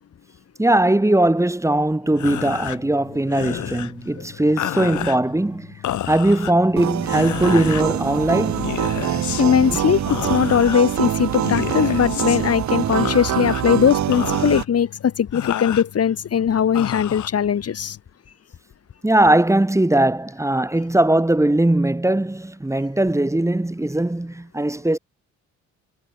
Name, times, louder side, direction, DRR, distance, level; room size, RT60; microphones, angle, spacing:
voice 1, 0.6-5.7 6.0-8.7 19.0-25.0, right 1 dB, 10° right, 4.1 m, -19 dB
sound 1, 2.1-18.0, left 12 dB, 75° left, 6.5 m, -32 dB
sound 2, 6.8-14.6, right 11 dB, 65° right, 3.0 m, -24 dB
voice 2, 9.4-18.0, left 8 dB, 55° left, 3.9 m, -20 dB
cardioid pair, 90°, 30 cm